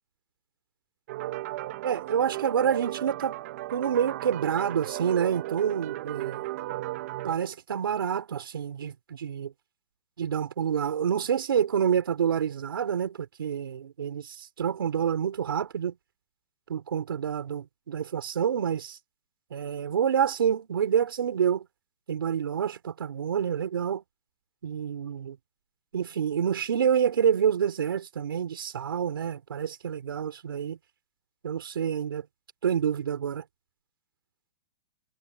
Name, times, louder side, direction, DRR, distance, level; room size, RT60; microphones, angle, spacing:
sound 1, 1.1-7.3, right 16 dB, 40° right, 1.6 m, -35 dB
voice 1, 1.8-3.4 3.7-6.5 7.2-9.5 10.2-16.0 16.7-19.0 19.5-21.7 22.1-24.0 24.6-25.4 25.9-30.8 31.4-32.2 32.6-33.4, right 8 dB, 85° right, 4.6 m, -28 dB
hypercardioid pair, 165°, 12 cm